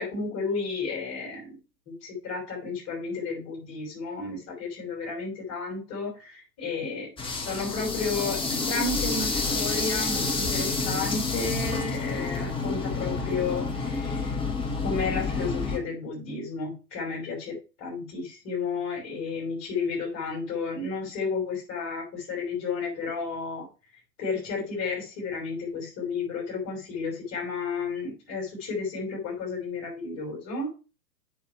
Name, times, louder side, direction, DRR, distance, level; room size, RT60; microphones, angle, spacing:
voice 1, 0.0-1.6 1.9-7.1 7.4-8.4 8.7-14.4 14.8-23.7 24.2-30.7, left 4 dB, 30° left, 0 dB, 5.5 m, -32 dB
sound 1, 7.2-15.8, left 3 dB, 10° left, 1.6 m, -29 dB
7.3 x 6.8 x 4.6 m, 0.32 s
figure-of-eight pair, 105°, 49 cm